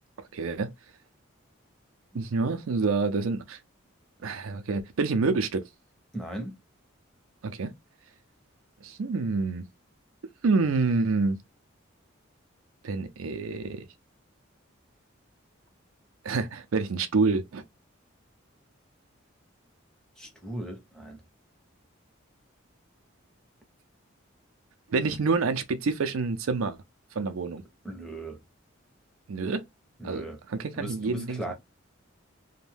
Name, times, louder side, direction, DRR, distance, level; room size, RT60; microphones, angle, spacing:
voice 1, 0.3-0.7 2.1-3.6 4.2-5.7 7.4-7.7 8.8-9.6 10.4-11.4 12.8-13.9 16.2-17.6 24.9-26.8 27.2-27.6 29.3-29.6 30.0-31.4, right 4 dB, 85° right, 0.5 m, -27 dB
voice 2, 6.1-6.6 20.2-21.2 27.8-28.4 30.0-30.4 30.7-31.5, right 1 dB, 5° left, 0.7 m, -37 dB
2.6 x 2.2 x 3.3 m
head